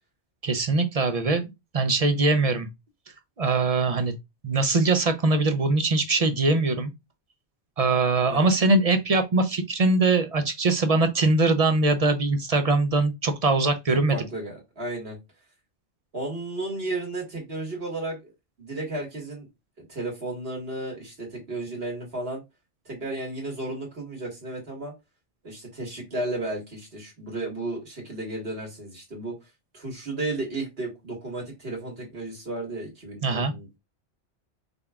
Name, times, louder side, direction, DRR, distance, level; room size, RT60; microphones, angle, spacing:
voice 1, 0.4-2.7 3.4-4.1 4.4-6.9 7.8-14.1 33.2-33.5, right 3 dB, 45° right, 0.5 m, -22 dB
voice 2, 13.9-15.2 16.1-18.3 18.6-19.5 19.8-22.4 22.8-24.9 25.4-29.3 29.7-33.8, right 2 dB, 60° right, 1.8 m, -33 dB
5.3 x 2.3 x 3.4 m
omnidirectional pair, 1.1 m